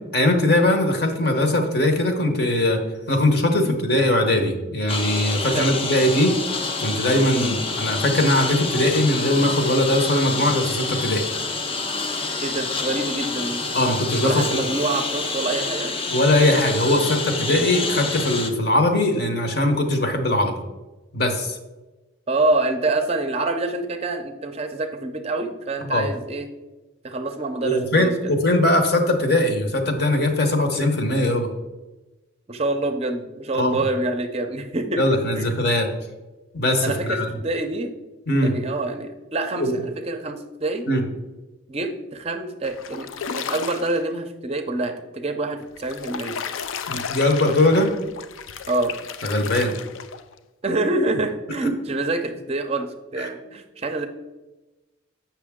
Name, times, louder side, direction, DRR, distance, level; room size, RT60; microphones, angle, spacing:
voice 1, 0.1-2.8 3.1-6.4 6.8-11.2 13.7-14.6 16.1-20.5 21.1-21.6 25.9-26.1 27.6-31.5 33.5-33.8 35.0-35.9 36.5-37.3 38.3-38.5 39.6-39.8 40.9-41.0 46.9-47.9 49.2-49.8 51.6-51.7 53.2-53.3, left 1 dB, 50° left, 5 dB, 1.0 m, -20 dB
Engine, 4.9-18.5, left 3 dB, 25° left, 0.5 m, -28 dB
voice 2, 12.4-13.6 14.2-15.9 22.3-26.5 27.0-28.3 32.5-35.0 35.3-35.5 36.8-37.9 38.4-40.9 41.7-43.1 43.4-46.4 48.7-48.9 50.6-54.1, right 2 dB, 30° right, 6 dB, 0.5 m, -26 dB
sound 1, 42.6-44.0 45.6-50.4, left 6 dB, 80° left, 0.4 m, -33 dB
7.6 x 5.8 x 3.6 m, 1.1 s
head